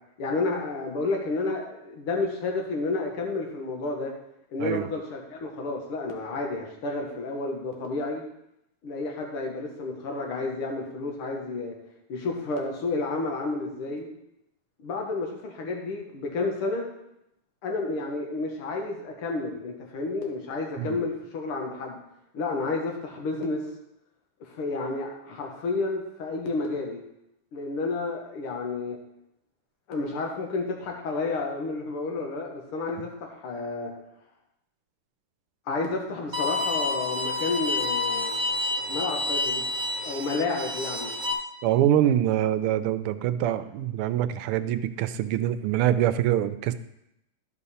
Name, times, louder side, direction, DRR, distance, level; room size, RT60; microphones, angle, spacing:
voice 1, 0.2-4.2 4.5-8.2 8.8-11.8 12.1-14.1 14.8-16.9 17.6-22.0 22.3-23.7 24.4-27.0 27.5-29.0 29.9-33.9 35.7-38.4 38.9-39.7 40.1-41.1, left 3 dB, 90° left, 1 dB, 2.2 m, -31 dB
Bowed string instrument, 36.3-41.3, left 2 dB, 50° right, 0.5 m, -29 dB
voice 2, 41.6-46.7, right 11 dB, 85° right, 12 dB, 1.5 m, -24 dB
12.5 x 5.2 x 4.2 m, 0.82 s
omnidirectional pair, 2.3 m